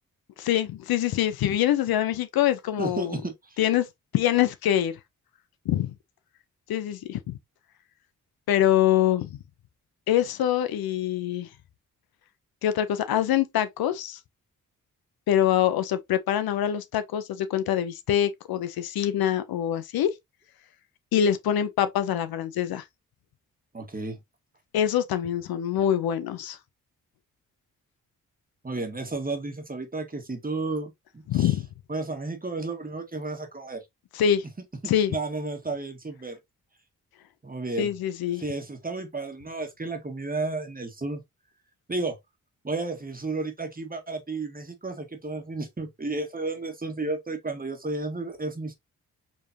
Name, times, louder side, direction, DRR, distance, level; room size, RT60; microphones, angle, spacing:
voice 1, 0.4-3.2 3.6-3.9 4.1-5.0 5.7-5.9 6.7-7.4 8.5-9.3 10.1-11.5 12.6-14.2 15.3-20.1 21.1-22.8 24.7-26.6 31.3-31.7 34.1-34.4 34.9-35.1 37.8-38.4, left 10 dB, 80° left, 0.6 m, -24 dB
voice 2, 2.8-3.6 23.7-24.2 28.6-31.5 31.9-33.8 35.1-36.4 37.4-37.9 38.4-41.2 41.9-42.1 42.6-48.7, right 3 dB, 25° right, 1.5 m, -32 dB
4.5 x 3.1 x 2.7 m
supercardioid pair, 50°, 36 cm